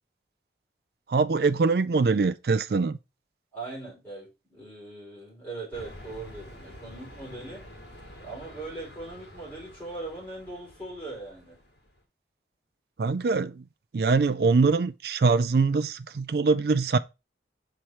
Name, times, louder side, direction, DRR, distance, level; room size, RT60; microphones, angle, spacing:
voice 1, 1.1-3.0 13.0-13.6 13.9-17.0, right 4 dB, 60° right, 0.4 m, -23 dB
voice 2, 3.5-7.7 8.2-11.6, right 2 dB, 10° left, 4.6 m, -40 dB
sound 1, 5.7-12.0, equal, 75° left, 2.6 m, -48 dB
5.7 x 4.5 x 4.8 m
head